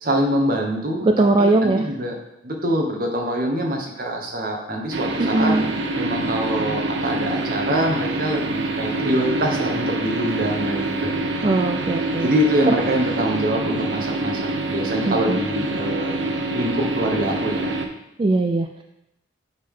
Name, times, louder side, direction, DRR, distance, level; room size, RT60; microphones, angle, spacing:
voice 1, 0.0-2.2 2.4-5.5 5.9-11.1 12.2-16.2 16.5-17.7, right 1 dB, 50° right, 1 dB, 1.2 m, -24 dB
voice 2, 1.2-1.9 5.2-5.7 11.4-12.3 15.1-15.4 18.2-18.8, right 2 dB, 30° right, 5 dB, 0.3 m, -20 dB
sound 1, 4.9-17.9, right 2 dB, 80° right, 0.8 m, -25 dB
7.8 x 3.9 x 5.5 m, 0.88 s
head